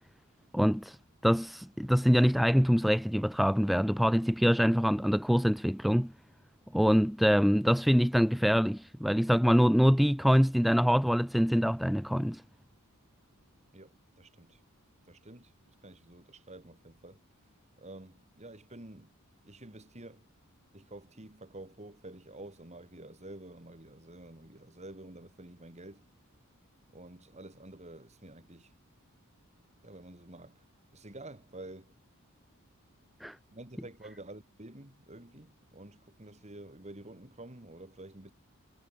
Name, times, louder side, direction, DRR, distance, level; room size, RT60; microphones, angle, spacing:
voice 1, 0.5-1.0 1.2-6.1 6.7-12.4 33.2-33.4, equal, ahead, 0.5 m, -25 dB
voice 2, 13.7-14.6 15.1-15.5 15.8-17.2 17.8-19.1 19.4-20.3 20.7-26.0 26.9-28.7 29.8-30.6 30.9-31.9 33.5-38.3, right 1 dB, 30° right, 3.1 m, -49 dB
head